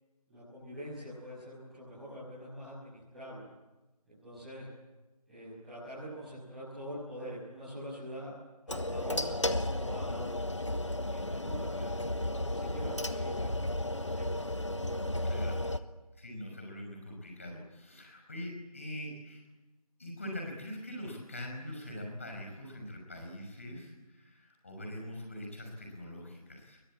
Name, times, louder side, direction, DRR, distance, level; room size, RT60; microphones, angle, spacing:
voice 1, 0.3-3.5 4.0-4.7 5.3-8.3 8.7-13.5 14.1-14.5, equal, ahead, -17 dB, 7.4 m, -44 dB
sound 1, 8.7-15.8, left 1 dB, 45° left, 1.5 m, -33 dB
voice 2, 15.2-15.6 16.1-19.4 20.0-26.8, left 1 dB, 20° left, 2 dB, 5.7 m, -43 dB
28.5 x 23.0 x 8.7 m, 1.1 s
figure-of-eight pair, 175°, 20 cm